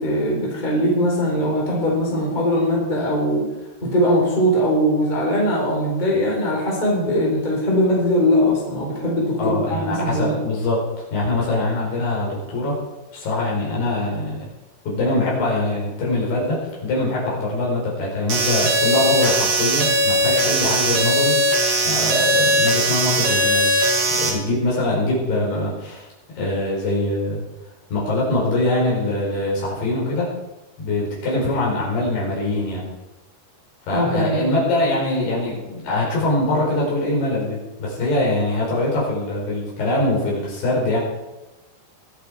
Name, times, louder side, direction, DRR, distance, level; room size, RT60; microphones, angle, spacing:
voice 1, 0.0-3.5 3.8-10.4 33.9-34.4, equal, 10° left, -3 dB, 3.8 m, -20 dB
voice 2, 9.4-10.8 11.1-12.8 13.1-14.4 14.8-21.4 21.8-23.7 24.1-26.1 26.3-27.5 27.9-30.3 30.8-32.8 33.9-41.0, left 2 dB, 55° left, -4 dB, 6.7 m, -23 dB
sound 1, 18.3-24.3, right 1 dB, 50° right, 3.8 m, -19 dB
23.5 x 8.5 x 5.0 m, 1.0 s
omnidirectional pair, 5.5 m